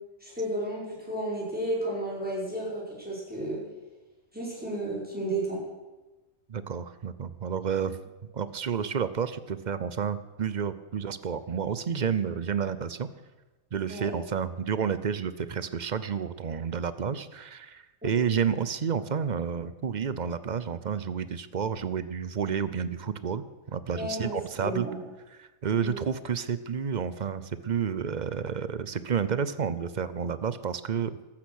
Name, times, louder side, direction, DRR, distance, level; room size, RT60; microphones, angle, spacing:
voice 1, 0.2-3.6 4.3-5.6 13.9-14.1 18.0-18.1 23.9-25.0 25.8-26.0, right 1 dB, 5° right, -6 dB, 5.6 m, -32 dB
voice 2, 6.5-8.0 8.3-13.1 13.7-23.4 23.7-24.9 25.4-31.2, right 7 dB, 45° right, 14 dB, 0.6 m, -30 dB
14.5 x 12.0 x 6.4 m, 1.2 s
omnidirectional pair, 1.4 m